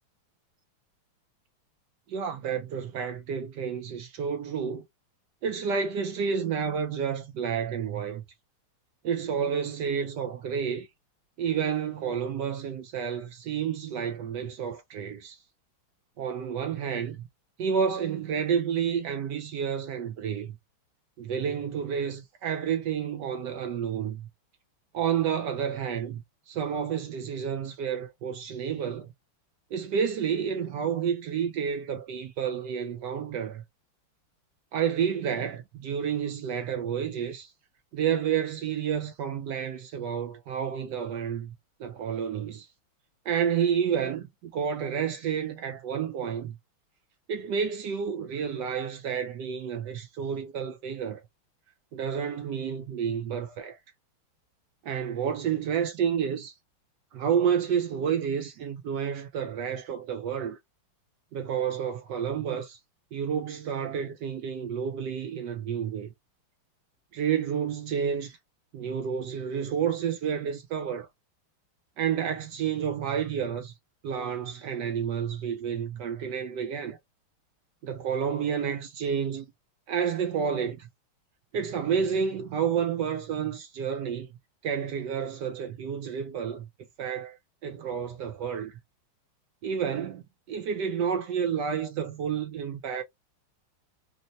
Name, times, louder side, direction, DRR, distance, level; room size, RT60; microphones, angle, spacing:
voice 1, 2.1-4.9 5.4-8.2 9.0-10.9 11.4-15.4 16.2-17.2 17.6-20.5 21.2-24.3 24.9-29.1 29.7-33.6 34.7-37.5 37.9-41.5 41.8-42.7 43.3-46.6 47.3-51.2 51.9-53.8 54.8-56.5 57.1-60.6 61.3-62.8 63.1-66.1 67.1-68.4 68.7-71.1 72.0-73.7 74.0-77.0 77.8-79.5 79.9-80.9 81.5-84.3 84.6-86.7 87.0-87.4 87.6-88.8 89.6-93.0, right 7 dB, 75° right, 1.0 m, -30 dB
4.0 x 2.1 x 2.6 m
omnidirectional pair, 2.3 m